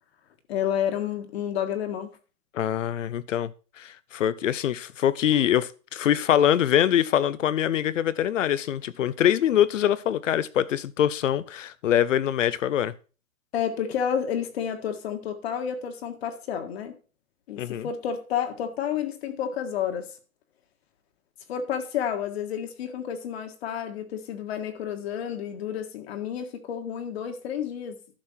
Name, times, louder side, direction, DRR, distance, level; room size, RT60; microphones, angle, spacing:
voice 1, 0.5-2.2 13.5-16.9 17.5-20.1 21.5-28.0, left 8 dB, 45° left, 1.8 m, -30 dB
voice 2, 2.5-3.5 3.8-12.9 17.6-17.9, left 10 dB, 60° left, 0.8 m, -24 dB
11.5 x 6.5 x 4.4 m
hypercardioid pair, 140°, 42 cm